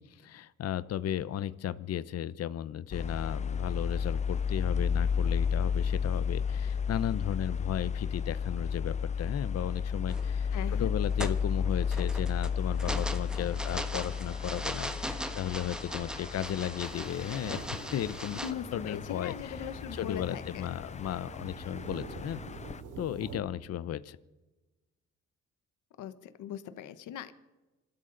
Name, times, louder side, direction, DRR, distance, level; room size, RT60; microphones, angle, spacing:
voice 1, 0.0-10.5 10.8-17.6 17.9-18.4 18.7-22.4 23.0-24.2, left 11 dB, 55° left, 16 dB, 0.7 m, -35 dB
sound 1, 2.9-22.8, left 6 dB, 25° left, 0.4 m, -33 dB
sound 2, 10.1-10.4 10.9-18.5, equal, 5° right, 1.3 m, -39 dB
voice 2, 10.5-10.9 18.4-20.6 26.0-27.3, left 9 dB, 80° left, 12 dB, 1.1 m, -40 dB
sound 3, 16.8-23.4, right 5 dB, 85° right, 2.6 m, -46 dB
27.0 x 13.0 x 3.9 m, 1.1 s
cardioid pair, 90°, 30 cm